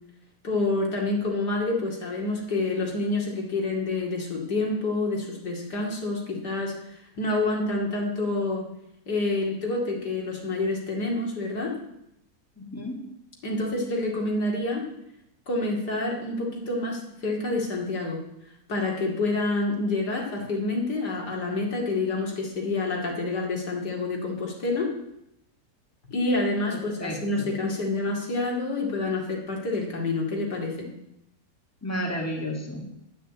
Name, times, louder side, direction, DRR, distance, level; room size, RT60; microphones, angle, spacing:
voice 1, 0.4-6.7 7.2-8.7 9.1-11.7 13.4-14.8 15.5-18.2 18.7-24.9 26.1-30.9, left 2 dB, 75° left, -1 dB, 3.0 m, -28 dB
voice 2, 12.6-13.1 26.7-27.5 31.8-32.9, equal, 10° left, 0 dB, 1.9 m, -32 dB
9.3 x 8.9 x 8.2 m, 0.81 s
omnidirectional pair, 1.8 m